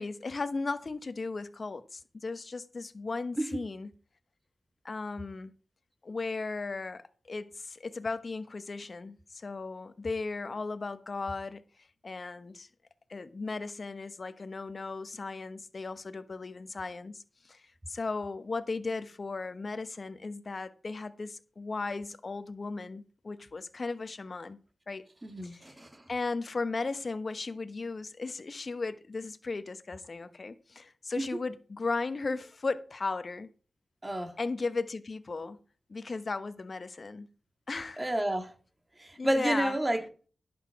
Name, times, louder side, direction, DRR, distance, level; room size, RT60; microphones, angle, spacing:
voice 1, 0.0-3.9 4.8-5.5 6.0-11.6 12.0-12.7 13.1-17.6 17.9-24.6 24.9-25.1 25.4-25.7 26.1-33.5 34.4-35.6 35.9-37.3 37.7-38.1 39.2-39.7, left 3 dB, 50° left, 1.0 m, -36 dB
voice 2, 25.2-26.0 31.2-31.4 34.0-34.3 38.0-38.5 39.0-40.0, right 1 dB, 20° right, 2.0 m, -30 dB
11.0 x 8.0 x 4.8 m
cardioid pair, 45°, 0 cm